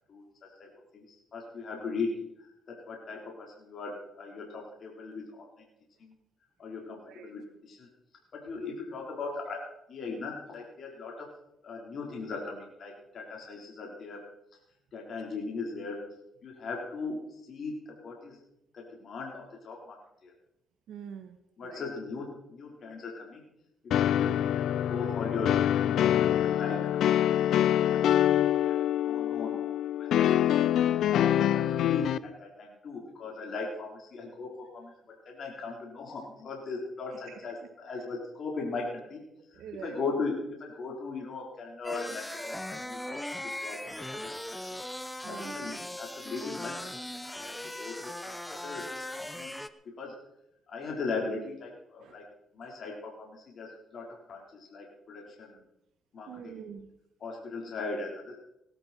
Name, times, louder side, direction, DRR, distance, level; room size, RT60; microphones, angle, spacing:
voice 1, 0.6-5.5 6.0-6.1 6.6-7.9 8.3-11.3 11.6-14.2 14.9-16.0 16.4-18.4 18.7-20.0 20.2-20.3 21.6-23.4 23.8-30.7 31.1-34.9 35.3-39.2 39.5-43.2 43.4-44.8 45.3-46.9 47.2-47.5 47.8-49.1 49.3-49.6 49.8-50.2 50.7-52.2 52.5-55.6 56.1-56.6 57.2-58.4, left 4 dB, 55° left, -1 dB, 4.4 m, -39 dB
voice 2, 20.9-21.9 37.1-37.7 39.5-40.1 45.2-45.8 52.0-52.2 52.6-52.8 56.3-56.9, right 7 dB, 75° right, 8 dB, 1.4 m, -45 dB
sound 1, 23.9-32.2, left 11 dB, 75° left, 0.5 m, -25 dB
sound 2, 41.8-49.7, left 1 dB, 5° left, 0.9 m, -39 dB
19.0 x 12.5 x 4.5 m, 0.80 s
cardioid pair, 90°, 0 cm